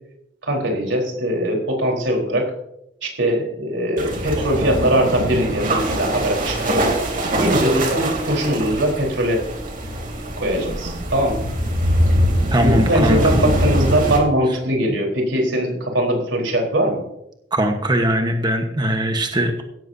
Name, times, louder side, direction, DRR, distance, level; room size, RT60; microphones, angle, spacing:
voice 1, 0.4-2.5 3.0-6.8 7.4-9.5 10.4-11.5 12.6-17.0, right 1 dB, 90° right, 0 dB, 4.1 m, -21 dB
sound 1, 4.0-14.2, equal, 50° right, 3.0 m, -22 dB
voice 2, 12.5-13.4 14.9-15.0 17.5-19.6, equal, 25° right, 4 dB, 1.2 m, -20 dB
17.0 x 13.5 x 2.8 m, 0.80 s
head